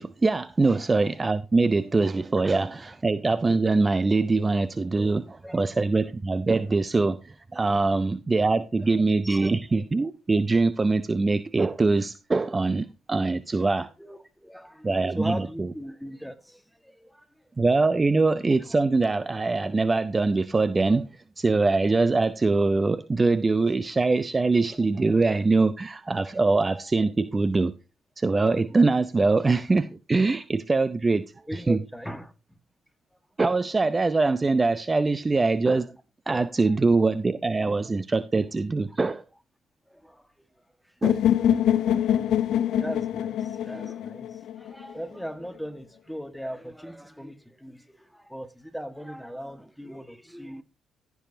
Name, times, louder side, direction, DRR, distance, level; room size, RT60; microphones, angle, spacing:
voice 1, 0.0-13.9 14.8-15.4 17.6-21.1 21.4-27.7 28.2-31.2 31.5-31.8 33.4-35.9 36.3-39.2 41.0-41.2, right 3 dB, 30° right, 0.6 m, -23 dB
voice 2, 5.1-5.6 7.8-7.9 8.9-9.5 14.0-17.2 31.5-32.6 36.6-36.7 39.9-40.3 41.8-42.0 42.8-50.6, equal, ahead, 1.6 m, -39 dB
sound 1, 41.0-45.0, left 10 dB, 70° left, 0.7 m, -24 dB
14.5 x 7.0 x 2.8 m
hypercardioid pair, 55°, 0 cm